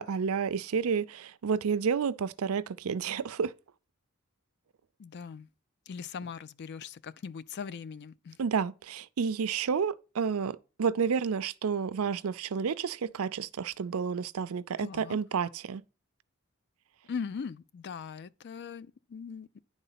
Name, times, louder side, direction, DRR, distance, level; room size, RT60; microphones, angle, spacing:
voice 1, 0.0-3.5 8.4-15.8, right 6 dB, 75° right, 0.5 m, -30 dB
voice 2, 5.0-5.5 5.9-8.4 14.8-15.2 17.0-19.6, left 6 dB, 50° left, 0.4 m, -40 dB
10.0 x 4.0 x 5.6 m
head